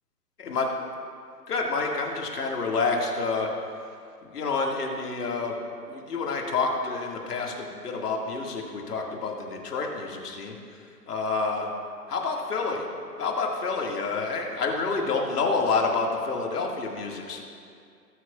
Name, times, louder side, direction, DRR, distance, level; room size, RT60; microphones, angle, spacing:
voice 1, 1.5-3.5 4.3-5.5 5.9-10.6 11.1-11.7 12.1-12.9 13.2-17.4, left 4 dB, 70° left, 0 dB, 2.1 m, -28 dB
19.5 x 8.0 x 2.4 m, 2.3 s
hypercardioid pair, 140°, 49 cm